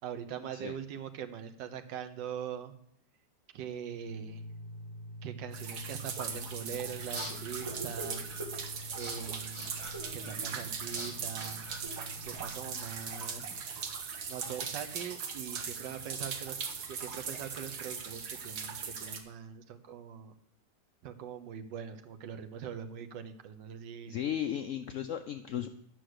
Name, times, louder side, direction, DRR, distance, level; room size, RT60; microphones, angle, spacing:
voice 1, 0.0-2.7 3.5-4.4 5.2-8.3 8.9-11.7 12.2-13.6 14.3-16.6 16.9-20.4 21.0-24.2, right 8 dB, 90° right, 7 dB, 1.5 m, -42 dB
sound 1, 4.0-13.4, equal, 5° left, 1.5 m, -47 dB
sound 2, 5.5-19.2, right 6 dB, 65° right, 1.6 m, -40 dB
sound 3, 6.6-12.5, right 1 dB, 15° right, 1.7 m, -44 dB
voice 2, 24.1-25.7, left 10 dB, 80° left, 8 dB, 0.7 m, -35 dB
11.0 x 6.2 x 6.4 m, 0.72 s
omnidirectional pair, 1.9 m